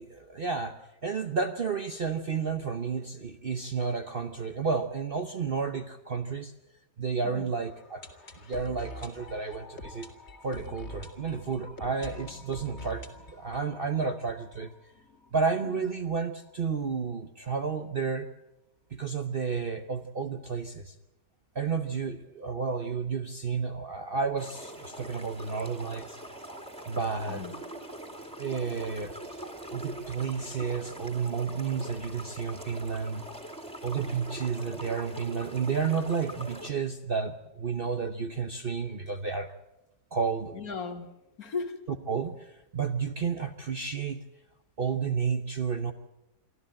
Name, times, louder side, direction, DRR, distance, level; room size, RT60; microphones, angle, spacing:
voice 1, 0.0-6.5 7.0-8.0 8.5-10.1 10.4-14.7 15.3-18.3 18.9-20.9 21.5-26.2 26.9-27.4 28.4-29.1 29.7-33.2 33.8-39.5 40.1-40.6 42.1-44.2 44.8-45.9, right 5 dB, 45° right, 0.8 m, -31 dB
voice 2, 7.2-7.5 15.6-15.9 27.3-27.5 40.5-41.9, left 5 dB, 60° left, 2.0 m, -37 dB
sound 1, 7.5-15.3 15.6-15.7 15.9-16.0 16.5-16.6, left 1 dB, 40° left, 2.3 m, -46 dB
sound 2, 24.4-36.7, right 1 dB, 5° left, 2.4 m, -42 dB
24.0 x 14.0 x 8.8 m
omnidirectional pair, 1.8 m